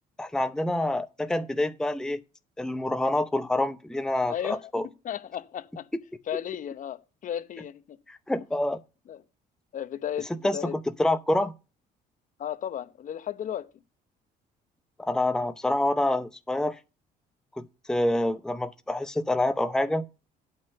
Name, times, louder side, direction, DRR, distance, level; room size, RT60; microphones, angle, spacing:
voice 1, 0.2-2.2 2.6-4.9 8.1-8.8 10.4-10.7 11.0-11.5 15.0-16.8 17.6-20.0, left 1 dB, 5° left, 0.7 m, -27 dB
voice 2, 4.3-4.7 5.0-5.9 6.3-8.0 9.1-9.2 9.7-10.7 12.4-13.7, left 10 dB, 50° left, 0.9 m, -34 dB
8.6 x 5.2 x 6.8 m
cardioid pair, 110°, 17 cm